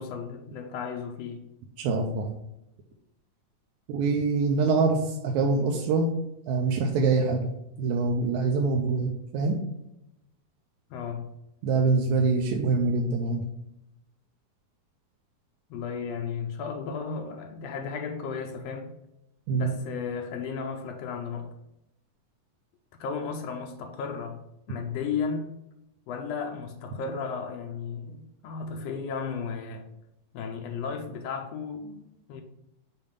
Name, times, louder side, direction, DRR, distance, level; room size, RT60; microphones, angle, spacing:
voice 1, 0.0-1.5 10.9-11.3 15.7-18.9 19.5-21.5 23.0-24.4 24.7-25.6 26.1-29.9 30.3-32.4, left 5 dB, 85° left, 1.4 m, -34 dB
voice 2, 1.8-2.3 3.9-6.1 6.5-7.5 7.8-9.6 11.6-13.4 19.5-19.7, right 4 dB, 80° right, 1.9 m, -24 dB
6.9 x 2.6 x 5.2 m
omnidirectional pair, 3.5 m